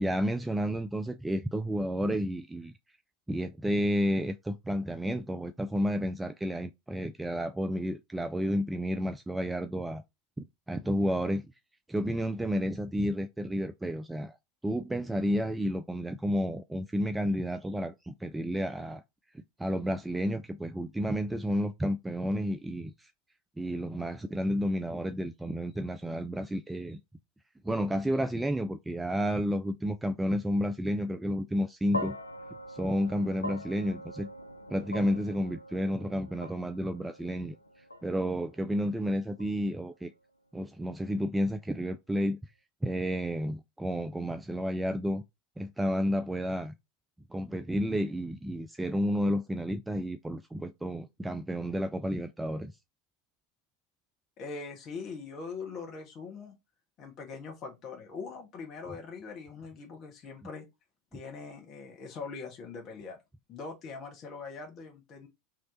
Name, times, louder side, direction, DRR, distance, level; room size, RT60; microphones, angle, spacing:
voice 1, 0.0-2.7 3.3-10.0 10.4-11.4 11.9-14.4 14.6-19.0 19.3-23.1 23.6-27.0 27.6-32.2 32.7-34.3 34.7-37.6 38.0-40.1 40.5-42.4 42.8-45.2 45.6-46.7 47.3-52.7, equal, 10° right, 0.3 m, -31 dB
sound 1, 31.9-40.3, left 1 dB, 85° left, 0.3 m, -43 dB
voice 2, 54.4-56.5 57.0-60.7 61.1-63.2 63.5-65.3, left 4 dB, 40° left, 1.3 m, -42 dB
3.1 x 2.9 x 3.8 m
figure-of-eight pair, 80°, 0 cm